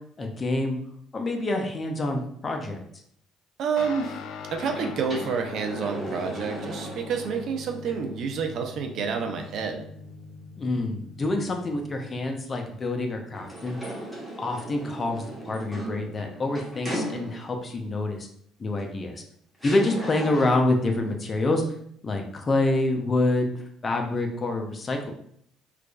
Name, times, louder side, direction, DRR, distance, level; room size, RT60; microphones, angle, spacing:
voice 1, 0.2-0.8 1.1-2.8 10.6-13.8 14.4-18.3 18.6-19.2 19.6-21.6 22.0-23.5 23.8-25.1, left 2 dB, 30° left, 3 dB, 0.7 m, -27 dB
voice 2, 3.6-4.2 4.5-9.8 19.8-19.9, right 6 dB, 65° right, 4 dB, 0.5 m, -29 dB
Guitar, 3.8-13.4, left 4 dB, 70° left, 0.3 m, -42 dB
sound 1, 4.5-7.4 7.9-8.0 13.3-17.7 18.8-18.9 19.6-20.8, right 1 dB, 5° right, 1.3 m, -37 dB
4.6 x 2.5 x 2.3 m, 0.68 s
supercardioid pair, 85°, 0 cm